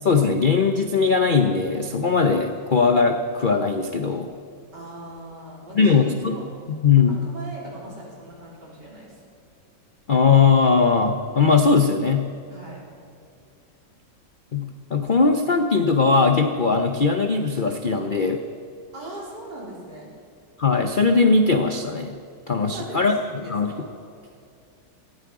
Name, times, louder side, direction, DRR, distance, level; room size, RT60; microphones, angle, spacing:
voice 1, 0.0-4.3 5.8-6.4 6.8-7.3 10.1-12.3 14.5-18.4 20.6-22.2 22.5-23.2 23.5-23.7, left 4 dB, 80° left, 5 dB, 0.4 m, -19 dB
voice 2, 4.7-6.4 6.9-9.2 12.5-12.8 18.9-20.1 22.6-23.9 24.2-24.3, right 1 dB, 65° right, -5 dB, 4.6 m, -40 dB
18.5 x 14.0 x 4.8 m, 2.5 s
omnidirectional pair, 2.0 m